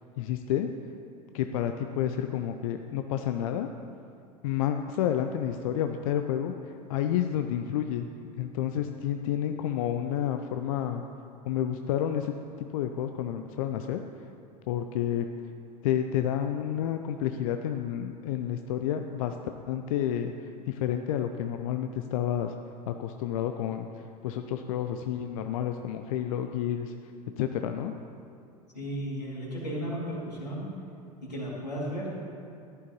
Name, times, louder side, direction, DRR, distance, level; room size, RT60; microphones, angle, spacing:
voice 1, 0.2-0.7 1.3-3.7 4.4-8.1 8.4-11.0 11.5-14.0 14.7-15.3 15.8-19.4 19.7-22.5 22.9-26.9 27.4-27.9, left 10 dB, 55° left, 7 dB, 0.5 m, -30 dB
voice 2, 28.7-30.7 31.2-32.1, equal, 90° left, -6 dB, 2.7 m, -34 dB
14.0 x 11.0 x 3.1 m, 2.5 s
figure-of-eight pair, 80°, 21 cm